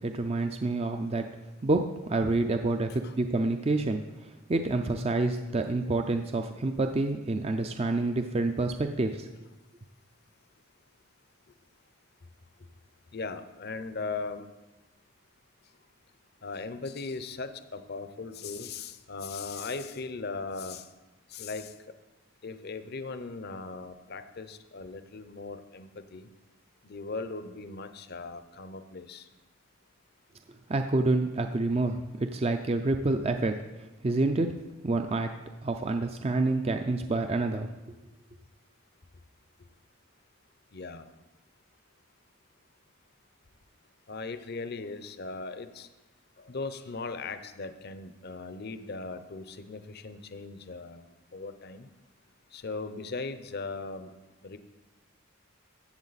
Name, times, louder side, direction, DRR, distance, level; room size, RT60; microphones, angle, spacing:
voice 1, 0.0-1.3 1.6-9.3 30.7-33.6 34.0-34.5 34.8-35.3 35.6-37.7, right 2 dB, 30° right, 6 dB, 0.4 m, -28 dB
voice 2, 13.1-14.4 16.4-20.8 21.3-21.7 22.4-26.3 26.8-29.2 40.7-41.1 44.1-45.9 46.5-51.0 51.3-51.9 52.5-54.1 54.4-54.6, left 3 dB, 50° left, 11 dB, 0.6 m, -38 dB
14.5 x 8.1 x 4.1 m, 1.1 s
head